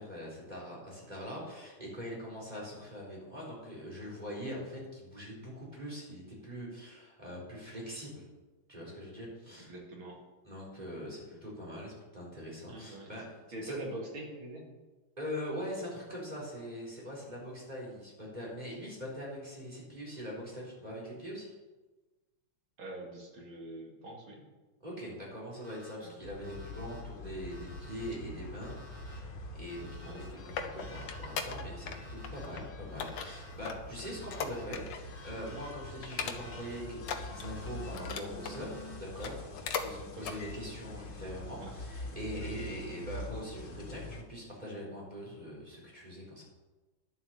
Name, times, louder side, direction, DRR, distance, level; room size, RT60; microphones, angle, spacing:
voice 1, 0.0-8.2 8.7-9.7 10.4-13.8 15.2-21.5 24.8-29.3 29.5-46.4, equal, 20° right, -4 dB, 4.2 m, -42 dB
voice 2, 9.6-10.2 12.7-13.1 13.5-14.7 17.2-17.3 22.8-24.4 26.0-26.1 30.0-30.2 39.7-39.9 40.2-40.4 41.6-41.7, right 1 dB, 85° right, -1 dB, 3.2 m, -44 dB
Alarm, 25.6-25.9 26.4-27.0 27.5-28.1 28.6-29.2 29.7-30.3 30.8-31.4 31.9-32.5 33.0-33.5 34.0-34.6 35.1-35.7 36.2-36.8 37.3-37.9 38.4-39.0, equal, 55° right, 3.2 m, -55 dB
sound 1, 26.2-44.2, left 2 dB, 90° left, 2.3 m, -45 dB
sound 2, 30.0-32.0 32.2-32.6 33.0-35.1 35.5-35.6 36.0-36.7 37.0-38.6 39.1-39.9 40.2-40.4 40.9-41.0, left 6 dB, 65° left, 1.6 m, -39 dB
11.5 x 7.9 x 7.1 m, 1.2 s
omnidirectional pair, 2.2 m